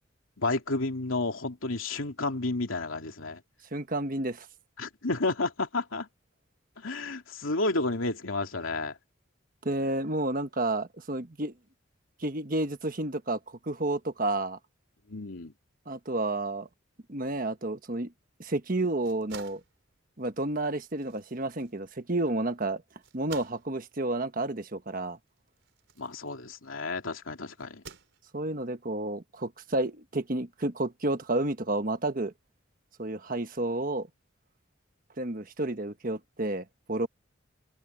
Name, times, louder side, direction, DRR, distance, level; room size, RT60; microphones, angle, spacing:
voice 1, 0.4-3.4 4.8-6.1 6.8-8.9 15.1-15.5 26.0-27.8, left 2 dB, 85° left, 2.7 m, -31 dB
voice 2, 3.7-4.5 9.6-11.5 12.2-14.6 15.9-16.7 17.1-18.1 18.4-19.6 20.2-22.8 23.1-25.2 28.3-32.3 33.0-34.1 35.2-37.1, right 2 dB, 45° right, 1.3 m, -31 dB
sound 1, 19.0-26.9 27.6-28.6, right 6 dB, 65° right, 4.5 m, -52 dB
open air
head